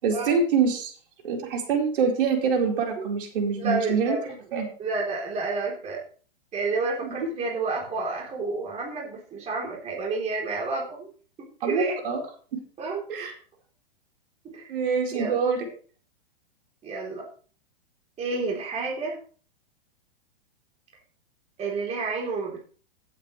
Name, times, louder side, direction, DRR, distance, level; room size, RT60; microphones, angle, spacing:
voice 1, 0.0-0.9 1.2-4.2 4.5-4.7 7.0-7.2 11.6-12.2 12.5-12.6 13.1-13.3 14.7-15.7, right 5 dB, 65° right, 1 dB, 4.4 m, -25 dB
voice 2, 3.6-4.4 4.8-6.0 6.5-11.1 11.4-12.0 12.8-13.3 14.4-14.7 15.1-15.4 16.8-17.3 18.2-19.2 21.6-22.6, right 3 dB, 20° right, -2 dB, 3.6 m, -30 dB
16.5 x 8.5 x 3.2 m, 0.41 s
hypercardioid pair, 130°, 30 cm